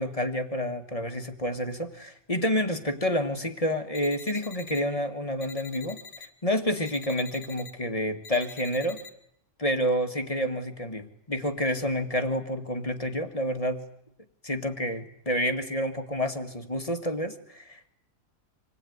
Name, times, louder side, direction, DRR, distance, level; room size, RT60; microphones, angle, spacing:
voice 1, 0.0-9.0 9.6-13.8 14.4-17.9, equal, 20° left, 6 dB, 1.7 m, -29 dB
sound 1, 3.9-4.8 5.4-6.3 6.8-7.7 8.2-9.1, left 5 dB, 65° left, 2.2 m, -45 dB
26.5 x 20.0 x 9.4 m, 0.75 s
omnidirectional pair, 1.7 m